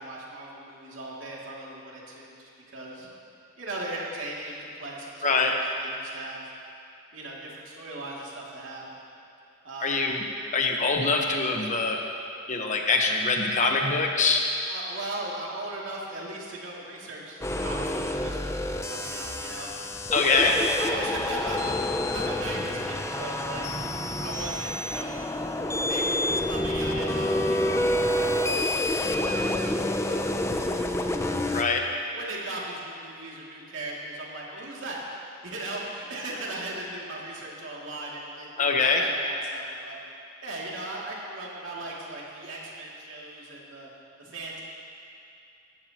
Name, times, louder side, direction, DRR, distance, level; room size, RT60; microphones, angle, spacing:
voice 1, 0.0-3.1 3.6-6.5 7.1-8.8 9.6-10.0 14.7-19.7 20.3-23.7 24.2-25.2 25.9-28.4 28.9-31.6 32.1-35.0 35.4-40.0 40.4-43.9 44.2-44.6, right 2 dB, 70° right, -4 dB, 2.6 m, -38 dB
voice 2, 5.2-5.5 9.8-10.2 10.5-12.0 12.5-14.4 20.1-20.5 31.5-31.8 38.6-39.0, left 4 dB, 40° left, 2 dB, 1.1 m, -23 dB
sound 1, 17.4-31.6, left 1 dB, 15° left, 0.5 m, -28 dB
18.0 x 14.5 x 3.0 m, 2.5 s
head